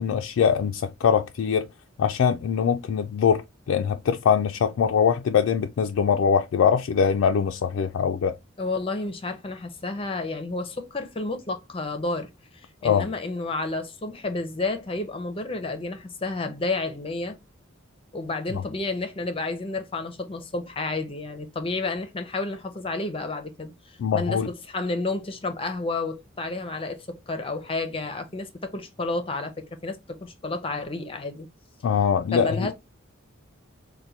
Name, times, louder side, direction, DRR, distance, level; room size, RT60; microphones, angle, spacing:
voice 1, 0.0-1.7 2.0-8.4 12.8-13.1 18.5-18.6 24.0-24.5 31.8-32.7, left 7 dB, 75° left, 0.3 m, -22 dB
voice 2, 8.6-17.4 18.1-31.5 32.3-32.7, left 3 dB, 25° left, 0.5 m, -31 dB
4.4 x 2.2 x 2.6 m
head